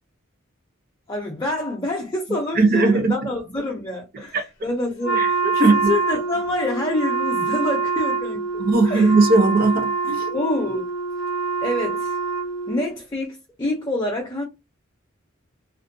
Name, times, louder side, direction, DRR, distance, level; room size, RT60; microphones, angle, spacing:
voice 1, 1.1-9.1 10.3-10.9 11.6-12.2 12.7-14.4, left 1 dB, 20° left, 0.5 m, -27 dB
voice 2, 2.6-3.2 4.3-4.4 5.2-5.3 5.6-5.9 8.6-10.3, right 3 dB, 45° right, 0.7 m, -18 dB
Wind instrument woodwind instrument, 5.0-13.0, right 4 dB, 65° left, 0.5 m, -25 dB
2.5 x 2.1 x 2.6 m
head